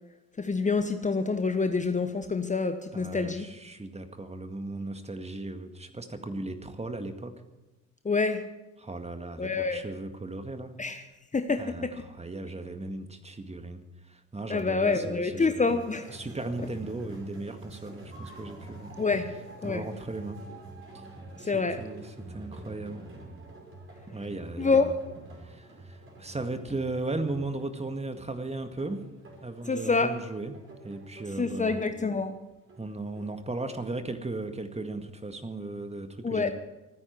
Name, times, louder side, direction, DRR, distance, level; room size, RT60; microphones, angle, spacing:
voice 1, 0.4-3.5 8.0-8.4 9.4-9.8 10.8-11.0 11.3-11.9 14.5-16.1 19.0-19.3 19.6-19.8 21.5-21.8 24.6-24.9 29.7-30.1 31.4-32.3 36.2-36.5, left 4 dB, 20° left, 8 dB, 1.1 m, -27 dB
voice 2, 2.9-7.3 8.8-10.8 11.6-15.7 16.1-18.9 19.6-20.4 21.4-23.0 24.1-24.9 25.4-29.0 29.4-30.6 30.8-31.8 32.8-36.5, right 2 dB, 15° right, 7 dB, 1.9 m, -36 dB
sound 1, 15.6-33.5, right 2 dB, 35° right, 5.6 m, -47 dB
26.0 x 9.9 x 4.6 m, 1.1 s
figure-of-eight pair, 50°, 37 cm